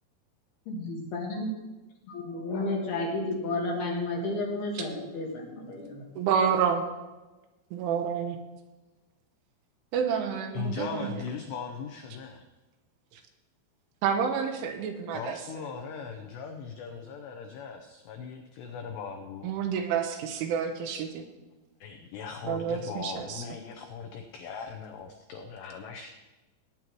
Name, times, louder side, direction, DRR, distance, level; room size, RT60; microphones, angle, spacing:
voice 1, 0.7-1.5 2.1-6.0, left 2 dB, 60° left, -1 dB, 3.1 m, -32 dB
voice 2, 6.2-6.8 7.7-8.4 9.9-11.1 13.1-13.2 14.0-15.4 19.4-21.3 22.4-23.4, right 7 dB, 80° right, 5 dB, 3.1 m, -29 dB
voice 3, 10.5-12.4 15.1-19.6 21.8-26.1, left 6 dB, 90° left, 4 dB, 2.4 m, -39 dB
18.0 x 9.3 x 3.0 m, 1.1 s
omnidirectional pair, 6.0 m